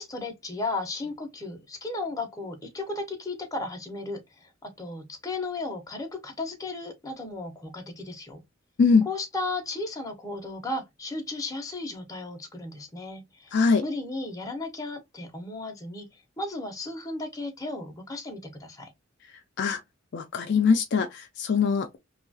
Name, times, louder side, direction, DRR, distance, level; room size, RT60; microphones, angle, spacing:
voice 1, 0.0-8.4 9.1-13.5 13.8-16.1 16.4-18.9, left 2 dB, 15° left, 0.6 m, -35 dB
voice 2, 13.5-13.8 19.6-19.8 20.1-22.0, left 5 dB, 55° left, 0.4 m, -22 dB
2.8 x 2.3 x 2.6 m
head